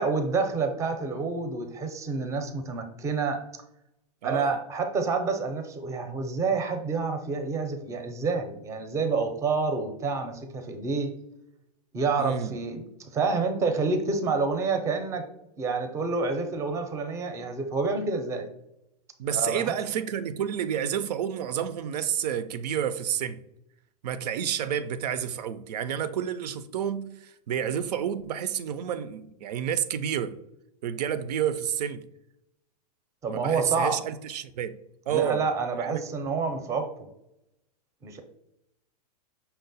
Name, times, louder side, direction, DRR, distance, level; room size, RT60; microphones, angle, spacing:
voice 1, 0.0-3.4 4.2-11.1 11.9-15.3 15.6-18.5 19.3-19.7 33.2-34.0 35.1-36.9 38.0-38.2, right 4 dB, 15° right, 0.5 m, -28 dB
voice 2, 4.2-4.6 12.2-12.6 19.2-23.4 24.0-30.4 30.8-32.1 33.3-34.8 35.1-35.4 35.7-36.0, right 9 dB, 85° right, 0.4 m, -30 dB
5.6 x 2.1 x 3.9 m
supercardioid pair, 140°, 20 cm